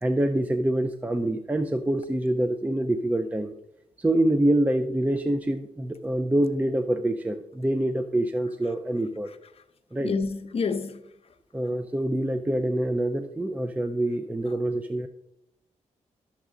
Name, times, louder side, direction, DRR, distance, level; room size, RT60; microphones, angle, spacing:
voice 1, 0.0-3.5 4.0-9.3 9.9-10.1 11.5-15.1, right 1 dB, 10° right, 0.5 m, -26 dB
voice 2, 10.0-11.0, left 4 dB, 50° left, 0.8 m, -28 dB
11.0 x 7.2 x 3.7 m
cardioid pair, 90°, 13 cm